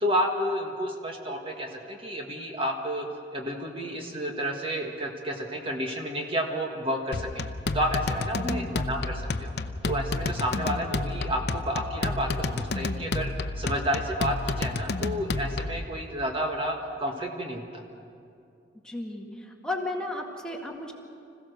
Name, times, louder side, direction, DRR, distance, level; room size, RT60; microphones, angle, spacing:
voice 1, 0.0-7.4 7.7-9.5 9.8-13.3 13.6-17.8, equal, 30° right, 1 dB, 1.5 m, -31 dB
sound 1, 7.1-15.9, left 3 dB, 65° left, 0.7 m, -30 dB
voice 2, 18.8-19.3 19.6-20.9, left 2 dB, 5° left, 0 dB, 1.9 m, -33 dB
26.0 x 16.0 x 6.6 m, 2.6 s
head